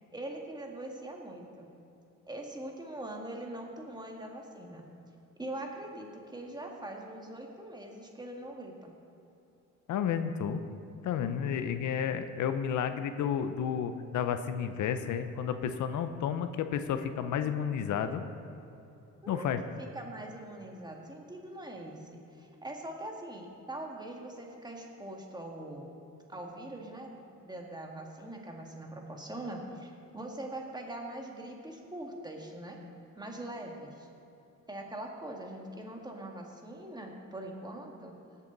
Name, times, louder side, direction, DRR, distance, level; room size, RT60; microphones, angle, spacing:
voice 1, 0.1-1.7 2.3-4.8 5.4-8.9 19.2-19.5 19.8-25.9 26.3-32.8 33.2-34.1 34.7-38.1, right 1 dB, 15° right, 1 dB, 1.9 m, -42 dB
voice 2, 9.9-10.6 11.0-18.2 19.3-19.6, left 8 dB, 75° left, 9 dB, 0.7 m, -31 dB
18.5 x 8.3 x 4.0 m, 2.9 s
cardioid pair, 90°, 30 cm